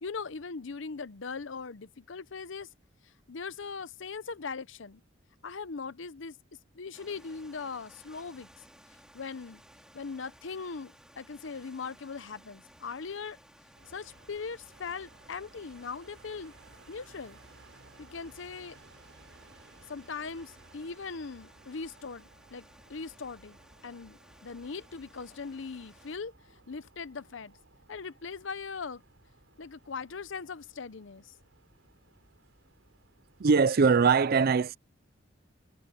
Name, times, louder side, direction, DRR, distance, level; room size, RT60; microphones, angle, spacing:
voice 1, 0.0-2.7 3.0-5.0 5.4-6.4 6.7-8.5 9.1-9.6 9.9-13.4 13.9-16.5 16.9-17.4 18.0-18.8 19.9-23.6 23.8-26.3 26.7-27.6 27.9-29.0 29.6-31.3, left 5 dB, 70° left, 0.7 m, -40 dB
sound 1, 6.9-26.2, equal, 5° right, 4.9 m, -58 dB
sound 2, 13.7-33.6, right 2 dB, 90° right, 3.9 m, -59 dB
voice 2, 33.4-34.8, right 5 dB, 50° right, 0.5 m, -22 dB
head